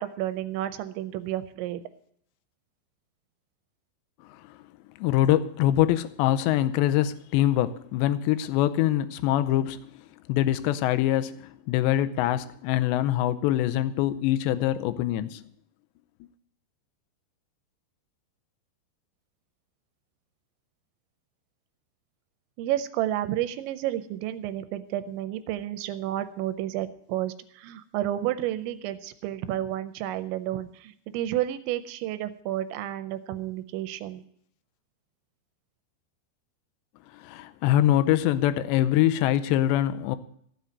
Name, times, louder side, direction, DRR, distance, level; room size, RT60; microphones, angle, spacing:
voice 1, 0.0-1.8 22.6-34.2, right 13 dB, 85° right, 2.9 m, -31 dB
voice 2, 5.0-9.9 10.3-15.4 37.2-40.2, left 13 dB, 80° left, 2.8 m, -24 dB
15.0 x 5.8 x 9.4 m
omnidirectional pair, 5.3 m